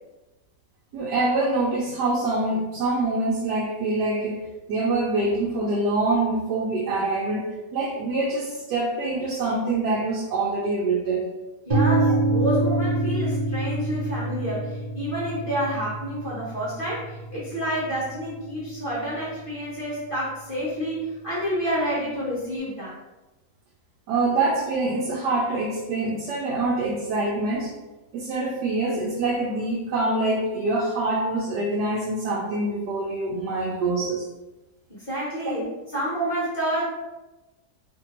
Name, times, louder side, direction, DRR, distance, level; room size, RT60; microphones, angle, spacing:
voice 1, 0.9-11.3 24.1-27.8 28.1-34.2, right 2 dB, 80° right, -3 dB, 1.1 m, -25 dB
voice 2, 11.7-22.9 34.9-36.8, equal, 40° left, -9 dB, 0.9 m, -29 dB
sound 1, 11.7-19.6, right 2 dB, 60° right, 0.4 m, -27 dB
2.8 x 2.6 x 2.9 m, 1.1 s
omnidirectional pair, 1.7 m